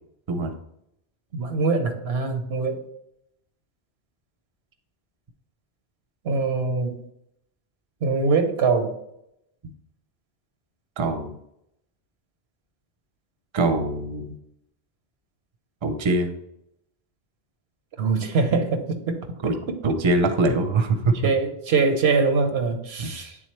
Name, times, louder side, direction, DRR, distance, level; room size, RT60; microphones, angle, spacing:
voice 1, 1.3-2.8 6.2-7.0 8.0-8.9 18.0-19.5 21.2-23.4, right 4 dB, 85° right, 6 dB, 1.1 m, -23 dB
voice 2, 11.0-11.4 13.5-14.4 15.8-16.3 19.4-19.5 19.8-21.2 23.0-23.1, right 2 dB, 35° right, 8 dB, 0.6 m, -23 dB
9.0 x 3.6 x 3.2 m, 0.79 s
omnidirectional pair, 1.1 m